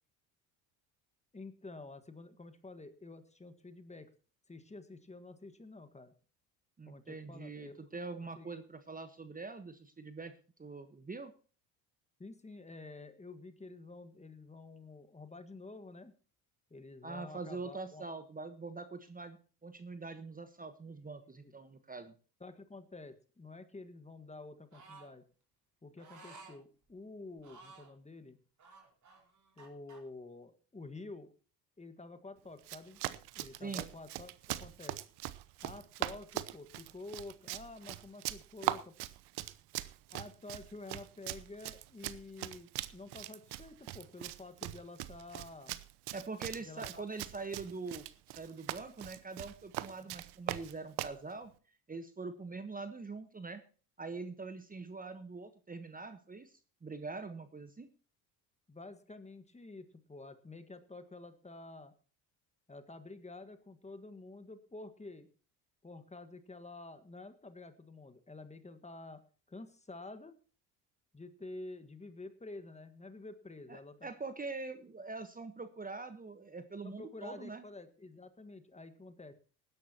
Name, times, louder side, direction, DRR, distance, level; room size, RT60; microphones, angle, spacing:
voice 1, 1.3-4.1 4.5-6.1 6.9-7.9 8.2-8.6 12.2-16.1 16.7-18.1 20.9-21.0 21.4-21.5 22.4-25.2 25.8-28.4 29.6-31.3 31.8-33.0 33.3-35.0 35.6-38.9 40.1-45.8 46.6-47.0 50.0-50.2 58.7-61.9 62.7-65.3 65.8-69.2 69.5-70.4 71.1-74.1 76.8-79.4, left 2 dB, 15° left, 9 dB, 1.6 m, -49 dB
voice 2, 6.8-10.3 10.6-11.3 17.0-22.1 33.6-33.9 46.1-51.5 51.9-53.6 54.0-57.9 73.7-77.6, right 3 dB, 20° right, 10 dB, 1.2 m, -44 dB
sound 1, 24.7-25.1 26.0-26.6 27.4-27.9 28.6-30.0, right 4 dB, 40° right, 4.5 m, -55 dB
Run, 32.6-51.2, right 16 dB, 60° right, 0.9 m, -41 dB
19.5 x 11.0 x 2.9 m, 0.37 s
hypercardioid pair, 70°, 45 cm